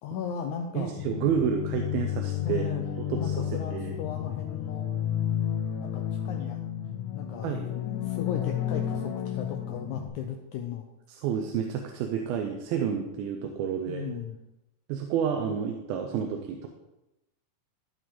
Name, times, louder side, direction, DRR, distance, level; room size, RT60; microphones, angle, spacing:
voice 1, 0.0-0.9 2.4-2.8 3.2-4.9 5.8-6.6 7.1-10.9 13.9-14.4, left 7 dB, 85° left, 3 dB, 1.7 m, -37 dB
voice 2, 0.7-2.6 3.0-3.9 7.4-7.7 11.1-14.0 14.9-16.7, right 8 dB, 85° right, 4 dB, 2.5 m, -30 dB
sound 1, 1.0-10.1, left 10 dB, 65° left, 2.0 m, -31 dB
14.5 x 5.1 x 3.7 m, 0.95 s
omnidirectional pair, 4.2 m